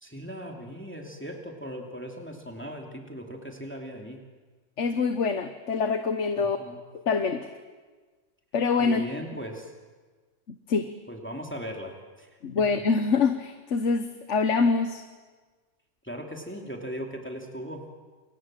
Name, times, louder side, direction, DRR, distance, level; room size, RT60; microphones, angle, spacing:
voice 1, 0.0-4.2 6.4-6.8 8.8-9.7 11.1-12.3 12.6-12.7 16.0-17.8, equal, 10° left, 1 dB, 2.8 m, -38 dB
voice 2, 4.8-6.6 7.1-7.5 8.5-9.1 10.7-10.9 12.4-15.0, left 4 dB, 75° left, 8 dB, 1.5 m, -25 dB
29.0 x 27.0 x 7.6 m, 1.4 s
omnidirectional pair, 1.2 m